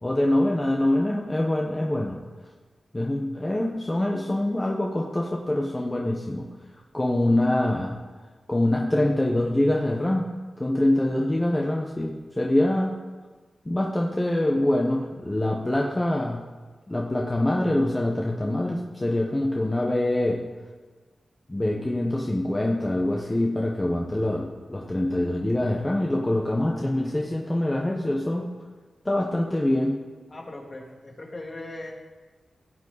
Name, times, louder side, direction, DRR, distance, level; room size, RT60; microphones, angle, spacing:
voice 1, 0.0-2.2 2.9-6.5 6.9-8.0 8.5-10.3 10.6-13.0 13.6-16.4 16.9-20.4 21.5-28.5 29.0-30.0, left 1 dB, 20° left, -2 dB, 1.2 m, -24 dB
voice 2, 30.3-31.9, left 2 dB, 40° left, -1 dB, 2.5 m, -39 dB
17.0 x 8.2 x 4.1 m, 1.3 s
wide cardioid pair, 85°, 0 cm